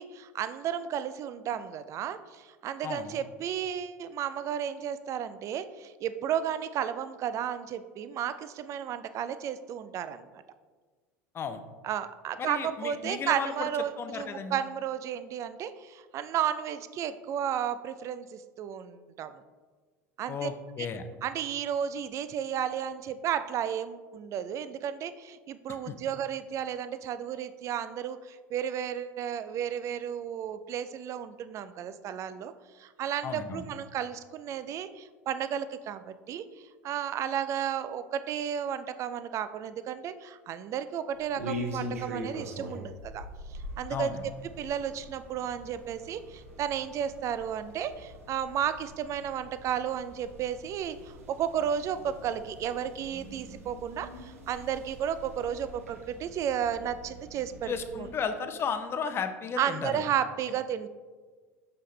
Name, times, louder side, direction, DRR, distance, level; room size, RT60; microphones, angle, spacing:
voice 1, 0.0-10.2 11.8-19.3 20.2-20.5 21.2-32.5 32.8-36.4 36.8-43.3 43.8-44.1 44.6-58.1 59.6-60.9, right 9 dB, 40° right, 12 dB, 0.4 m, -33 dB
voice 2, 2.8-3.2 11.3-11.6 12.4-13.7 14.0-14.6 20.3-21.1 25.7-26.0 33.2-33.6 43.9-44.3 57.6-60.1, left 6 dB, 30° left, 9 dB, 0.6 m, -34 dB
sound 1, 41.1-58.1, equal, 80° right, 1.0 m, -43 dB
6.7 x 5.5 x 3.1 m, 1.4 s
figure-of-eight pair, 75°, 8 cm